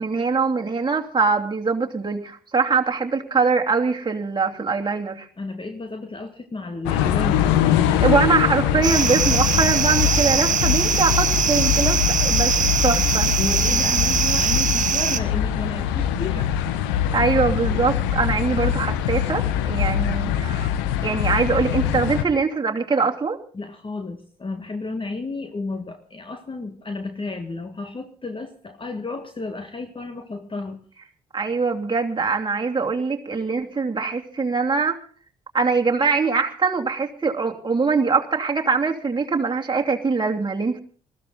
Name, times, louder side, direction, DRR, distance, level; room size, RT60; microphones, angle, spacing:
voice 1, 0.0-5.3 8.0-12.5 12.8-13.3 17.1-20.7 21.0-23.4 31.3-35.0 35.5-40.8, right 4 dB, 25° right, 1 dB, 2.7 m, -22 dB
voice 2, 5.4-7.8 13.4-16.5 23.5-30.8, left 3 dB, 25° left, 6 dB, 1.8 m, -32 dB
sound 1, 6.9-22.3, left 10 dB, 70° left, 1.2 m, -23 dB
sound 2, 8.8-15.2, right 8 dB, 40° right, 1.0 m, -22 dB
20.5 x 14.5 x 3.9 m, 0.43 s
figure-of-eight pair, 45°, 19 cm